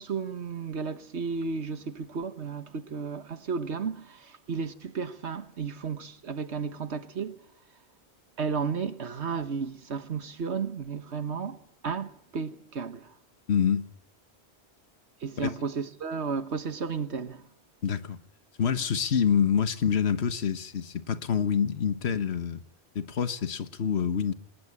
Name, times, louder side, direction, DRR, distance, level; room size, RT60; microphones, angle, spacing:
voice 1, 0.0-7.4 8.4-11.6 11.8-13.1 15.2-17.4, right 5 dB, 80° right, 1.5 m, -33 dB
voice 2, 13.5-13.8 15.4-15.6 17.8-18.2 18.6-22.6 22.9-24.3, left 7 dB, 70° left, 1.5 m, -26 dB
26.5 x 20.0 x 9.8 m
omnidirectional pair, 1.1 m